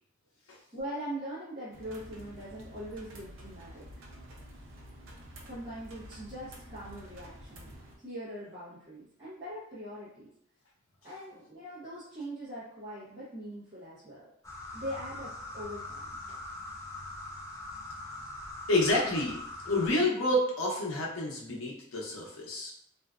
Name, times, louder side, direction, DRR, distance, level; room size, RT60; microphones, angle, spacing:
voice 1, 0.7-3.9 5.5-10.3 11.0-14.3 14.7-16.1, equal, 25° right, -12 dB, 0.7 m, -42 dB
sound 1, 1.7-8.0, equal, 75° right, 0.5 m, -49 dB
sound 2, 14.4-19.9, left 2 dB, 15° left, 0.3 m, -42 dB
voice 2, 18.7-22.7, left 1 dB, 90° left, -3 dB, 0.7 m, -29 dB
2.5 x 2.2 x 2.3 m, 0.69 s
head